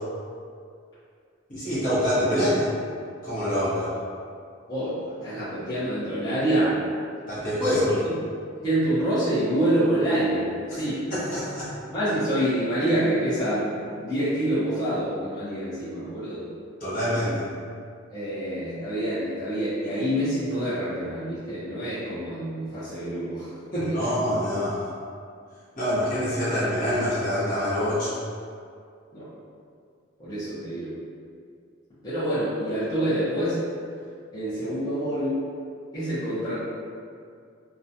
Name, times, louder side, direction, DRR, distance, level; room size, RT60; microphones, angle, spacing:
voice 1, 1.5-2.7 3.2-3.9 7.3-7.9 10.7-10.8 11.1-11.7 16.8-17.4 23.7-24.9 25.8-28.1, equal, 45° left, -11 dB, 1.0 m, -25 dB
voice 2, 4.7-6.8 7.9-8.1 8.6-11.0 11.9-16.5 18.1-24.3 26.5-26.9 29.1-29.3 30.2-30.9 32.0-33.6 34.3-35.4 35.9-36.6, right 1 dB, 20° left, -15 dB, 0.7 m, -27 dB
2.3 x 2.2 x 2.6 m, 2.3 s
head